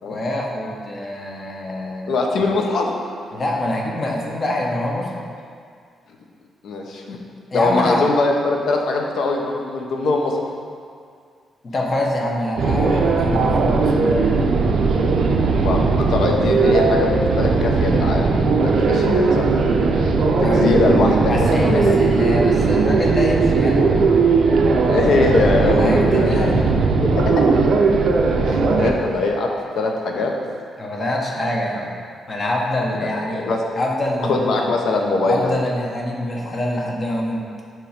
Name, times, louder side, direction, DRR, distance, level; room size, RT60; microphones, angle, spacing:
voice 1, 0.0-2.1 3.3-5.1 7.5-8.1 11.6-13.9 20.4-20.6 21.3-23.8 25.6-26.6 30.8-31.9 32.3-33.5 33.8-34.7 35.2-37.5, left 1 dB, 30° left, -1 dB, 0.7 m, -25 dB
voice 2, 2.1-2.9 6.6-7.2 7.5-10.4 15.6-19.5 20.4-22.0 24.8-26.5 27.0-27.5 28.4-29.5 29.8-30.3 33.0-33.6 34.2-35.5, left 3 dB, 60° left, 1 dB, 0.7 m, -21 dB
sound 1, 12.6-28.9, right 4 dB, 60° right, 0.5 m, -18 dB
7.4 x 3.1 x 5.0 m, 2.2 s
cardioid pair, 165°, 0 cm